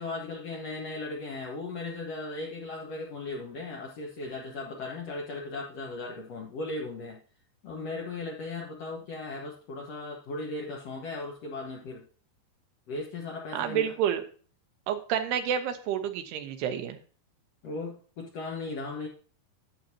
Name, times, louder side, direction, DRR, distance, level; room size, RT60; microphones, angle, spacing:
voice 1, 0.0-7.2 7.6-12.0 12.9-13.9 17.6-19.1, left 3 dB, 85° left, -1 dB, 1.4 m, -37 dB
voice 2, 13.5-14.2 14.9-17.0, right 9 dB, 80° right, 7 dB, 2.9 m, -29 dB
11.5 x 7.9 x 2.8 m, 0.40 s
omnidirectional pair, 4.8 m